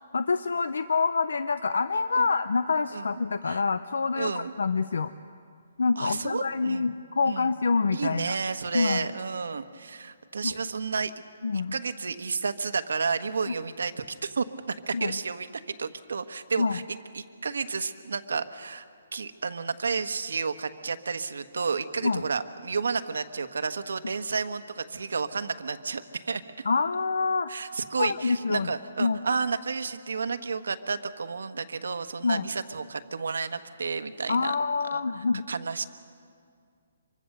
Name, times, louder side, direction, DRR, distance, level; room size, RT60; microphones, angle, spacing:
voice 1, 0.1-5.1 5.8-8.4 8.7-9.1 10.4-10.5 11.4-11.7 13.5-13.6 14.9-15.2 16.6-16.8 22.0-22.2 26.6-27.5 28.0-28.7 29.0-29.2 32.2-32.5 34.3-35.5, left 4 dB, 85° left, 12 dB, 0.7 m, -26 dB
voice 2, 4.2-4.5 6.0-6.9 7.3-7.5 7.9-11.1 11.7-16.8 17.1-18.8 19.1-26.4 27.5-34.5 34.9-35.0 35.5-35.8, right 5 dB, 85° right, 9 dB, 1.3 m, -31 dB
26.0 x 24.0 x 6.7 m, 2.2 s
hypercardioid pair, 170°, 0 cm